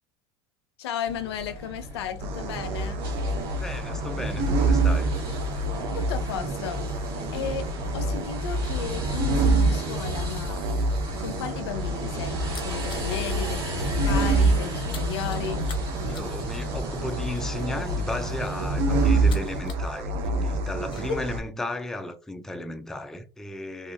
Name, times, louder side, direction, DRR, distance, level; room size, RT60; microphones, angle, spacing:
voice 1, 0.8-3.1 5.9-6.8 7.3-7.7 7.9-10.6 11.2-15.6, left 8 dB, 85° left, 0.5 m, -34 dB
sound 1, 1.1-19.6, equal, 75° right, 1.5 m, -36 dB
sound 2, 2.2-21.4, right 2 dB, 55° right, 0.6 m, -27 dB
voice 2, 3.6-5.1 16.1-23.9, left 1 dB, 5° left, 0.3 m, -35 dB
sound 3, 11.7-13.5 13.8-14.1 14.3-19.9 20.2-21.1, left 5 dB, 35° left, 0.7 m, -41 dB
2.7 x 2.3 x 2.5 m
hypercardioid pair, 90°, 13 cm